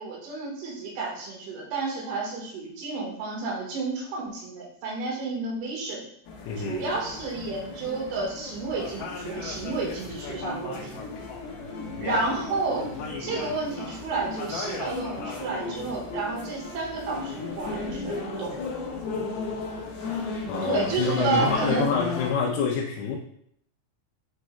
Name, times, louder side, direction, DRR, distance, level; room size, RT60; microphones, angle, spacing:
voice 1, 0.0-6.0 6.6-11.0 12.0-12.9 13.2-18.6 20.6-21.9, right 3 dB, 75° right, -1 dB, 3.7 m, -31 dB
sound 1, 6.3-22.3, left 3 dB, 65° left, 3.1 m, -35 dB
voice 2, 6.4-6.9 12.0-12.4 20.5-23.2, left 6 dB, 85° left, -5 dB, 3.4 m, -27 dB
10.0 x 4.5 x 2.2 m, 0.69 s
omnidirectional pair, 5.9 m